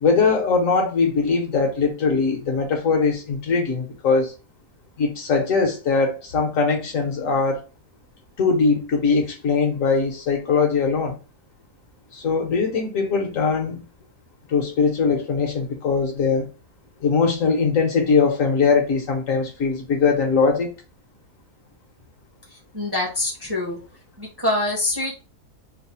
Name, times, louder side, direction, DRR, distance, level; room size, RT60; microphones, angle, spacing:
voice 1, 0.0-4.3 5.0-7.6 8.4-11.2 12.1-13.8 14.5-16.5 17.0-20.7, left 4 dB, 65° left, 1.1 m, -21 dB
voice 2, 22.7-23.8 24.2-25.1, left 1 dB, 20° right, 0.7 m, -25 dB
3.2 x 2.1 x 4.1 m
omnidirectional pair, 1.6 m